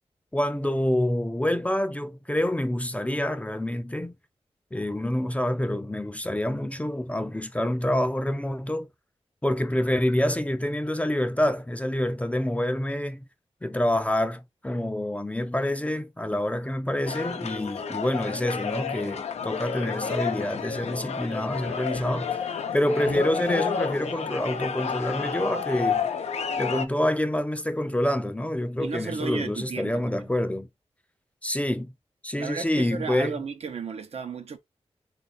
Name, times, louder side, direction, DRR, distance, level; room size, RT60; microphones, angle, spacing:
voice 1, 0.3-4.2 4.7-8.9 9.4-13.3 13.6-26.0 26.6-30.7 31.4-31.9 32.2-33.4, left 1 dB, 10° left, 0.4 m, -27 dB
sound 1, 17.1-26.9, left 6 dB, 85° left, 0.5 m, -30 dB
voice 2, 28.8-30.3 32.4-34.6, right 5 dB, 70° right, 0.7 m, -34 dB
3.3 x 2.4 x 4.1 m
cardioid pair, 65°, 11 cm